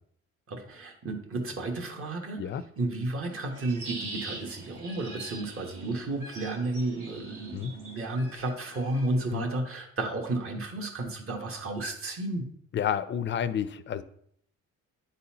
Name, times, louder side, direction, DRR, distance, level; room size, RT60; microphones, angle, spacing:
voice 1, 0.5-12.5, right 2 dB, 45° right, 3 dB, 1.3 m, -32 dB
sound 1, 3.3-9.4, right 2 dB, 85° right, 1.6 m, -44 dB
voice 2, 12.7-14.0, left 9 dB, 40° left, 13 dB, 0.4 m, -30 dB
10.0 x 4.1 x 2.8 m, 0.68 s
cardioid pair, 90°, 30 cm